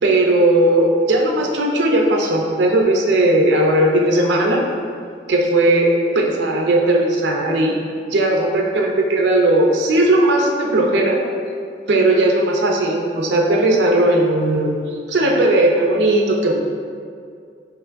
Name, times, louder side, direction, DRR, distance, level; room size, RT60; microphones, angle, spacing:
voice 1, 0.0-4.6 5.3-7.8 8.1-11.2 11.9-14.7 15.1-16.5, right 1 dB, 80° right, 0 dB, 0.6 m, -17 dB
5.4 x 3.0 x 2.6 m, 2.2 s
head